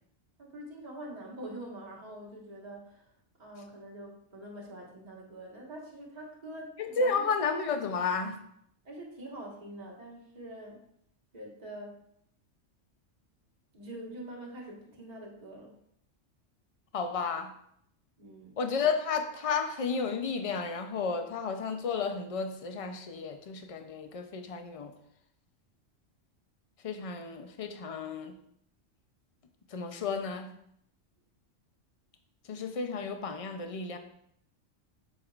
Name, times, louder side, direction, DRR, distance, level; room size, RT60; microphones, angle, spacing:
voice 1, 0.4-3.1 3.4-7.1 8.8-10.9 11.3-12.0 13.7-15.8 18.2-18.6, right 1 dB, 35° right, -2 dB, 1.6 m, -45 dB
voice 2, 6.8-8.4 16.9-17.5 18.6-24.9 26.8-28.4 29.7-30.5 32.5-34.0, left 5 dB, 40° left, 6 dB, 0.5 m, -32 dB
7.6 x 6.7 x 2.5 m, 0.72 s
omnidirectional pair, 1.3 m